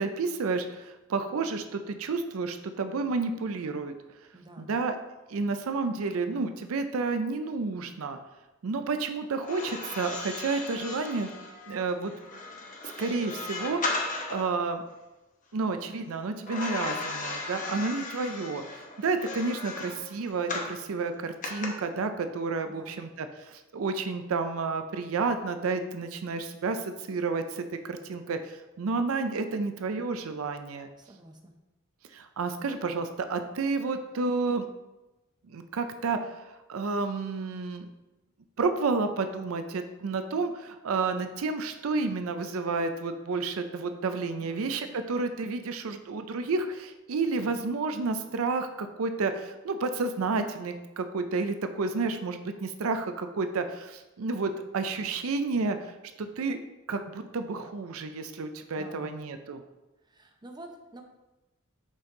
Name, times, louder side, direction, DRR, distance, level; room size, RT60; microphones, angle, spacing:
voice 1, 0.0-3.9 4.6-5.0 5.3-8.2 8.6-11.3 11.7-12.1 12.8-14.8 15.5-18.6 19.0-30.9 32.1-34.6 35.5-36.2 36.7-37.9 38.6-55.9 56.2-56.6 56.9-59.6, right 4 dB, 80° right, 8 dB, 0.5 m, -30 dB
voice 2, 4.3-4.7 22.6-23.0 31.0-31.5 44.4-44.6 47.4-47.5 58.7-59.2 60.1-61.0, right 1 dB, 20° right, 4 dB, 0.7 m, -48 dB
sound 1, 9.4-14.5 16.5-20.8 21.4-21.7, left 3 dB, 40° left, 0.9 m, -36 dB
5.3 x 5.3 x 3.7 m, 1.0 s
head